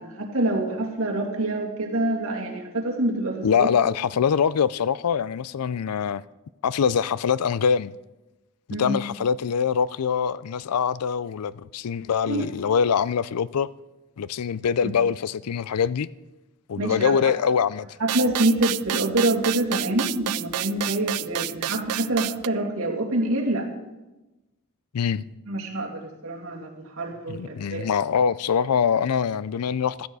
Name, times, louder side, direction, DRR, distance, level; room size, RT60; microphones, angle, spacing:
voice 1, 0.0-3.7 8.7-9.0 12.2-12.5 14.8-14.9 16.8-17.1 18.0-23.7 25.5-27.9, right 1 dB, 65° right, 2.6 m, -26 dB
voice 2, 3.4-6.2 6.6-7.9 8.8-13.7 14.2-16.1 16.7-17.9 24.9-25.2 27.3-30.1, left 7 dB, 90° left, 0.4 m, -24 dB
sound 1, 18.1-22.5, right 13 dB, 90° right, 0.4 m, -29 dB
16.0 x 13.0 x 4.8 m
head